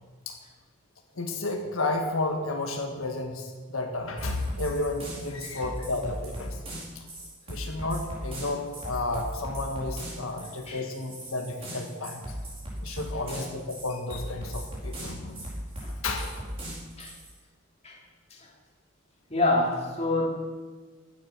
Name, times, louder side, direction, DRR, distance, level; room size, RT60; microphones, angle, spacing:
voice 1, 1.1-6.6 6.9-7.0 7.5-12.3 12.8-15.4 16.0-16.3, left 2 dB, 85° left, 3 dB, 1.6 m, -32 dB
sound 1, 4.2-17.3, equal, 30° right, 4.5 m, -38 dB
voice 2, 19.3-20.2, left 2 dB, 30° left, -2 dB, 2.8 m, -26 dB
15.5 x 10.5 x 6.1 m, 1.4 s
head